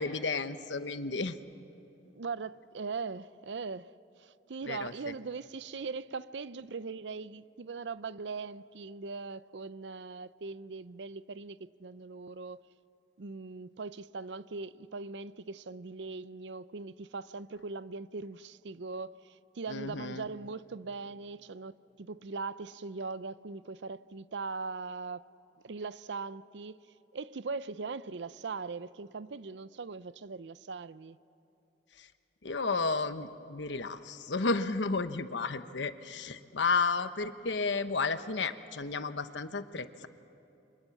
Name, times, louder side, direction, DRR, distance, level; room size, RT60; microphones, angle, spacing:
voice 1, 0.0-1.4 4.7-5.1 19.7-20.3 32.0-32.1 32.4-40.1, left 4 dB, 75° left, 1.1 m, -32 dB
voice 2, 2.2-12.6 13.2-25.3 25.6-26.8 27.1-31.2, right 4 dB, 70° right, 0.6 m, -40 dB
29.5 x 26.5 x 7.2 m
head